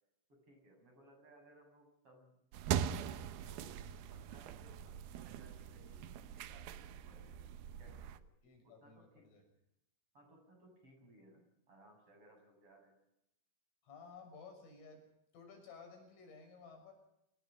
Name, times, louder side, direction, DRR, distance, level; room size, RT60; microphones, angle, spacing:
voice 1, 0.3-2.4 2.6-3.8 4.1-6.1 6.3-7.5 7.8-8.2 8.6-9.2 10.1-12.9, right 1 dB, 30° right, 3 dB, 7.9 m, -63 dB
sound 1, 2.5-8.2, right 9 dB, 90° right, 2.1 m, -42 dB
voice 2, 8.4-9.4 13.8-15.0 15.3-16.9, left 5 dB, 80° left, 4 dB, 8.8 m, -55 dB
27.5 x 19.5 x 5.4 m, 0.82 s
omnidirectional pair, 5.7 m